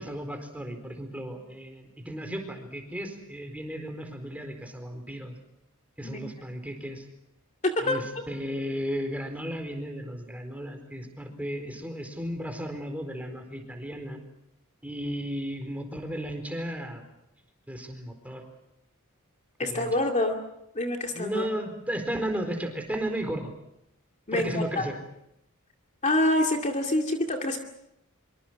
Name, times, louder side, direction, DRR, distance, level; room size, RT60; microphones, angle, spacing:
voice 1, 0.0-5.3 6.0-7.1 7.8-14.2 14.8-17.0 17.7-18.4 19.6-19.9 21.1-23.5 24.3-25.0, equal, 5° right, 5 dB, 4.4 m, -34 dB
voice 2, 7.6-8.0 19.6-20.3 20.8-21.5 24.3-24.9 26.0-27.6, left 1 dB, 35° left, 3 dB, 2.3 m, -26 dB
25.5 x 25.0 x 6.4 m, 0.82 s
head